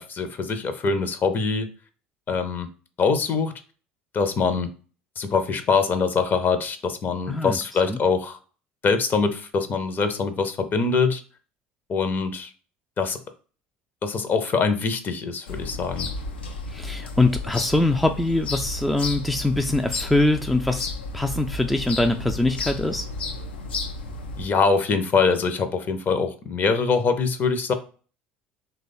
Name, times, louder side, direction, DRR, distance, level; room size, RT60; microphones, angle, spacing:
voice 1, 0.0-1.7 2.3-2.7 3.0-3.5 4.1-4.7 5.2-8.4 8.8-11.2 11.9-12.5 13.0-13.2 14.0-16.1 24.4-27.7, left 5 dB, 35° left, 9 dB, 0.6 m, -23 dB
voice 2, 7.3-7.6 7.9-8.0 16.7-20.9 21.1-23.1, left 2 dB, ahead, 5 dB, 0.3 m, -23 dB
sound 1, 15.5-24.5, left 3 dB, 80° left, 0.5 m, -33 dB
3.0 x 2.3 x 4.1 m, 0.39 s
figure-of-eight pair, 65°, 6 cm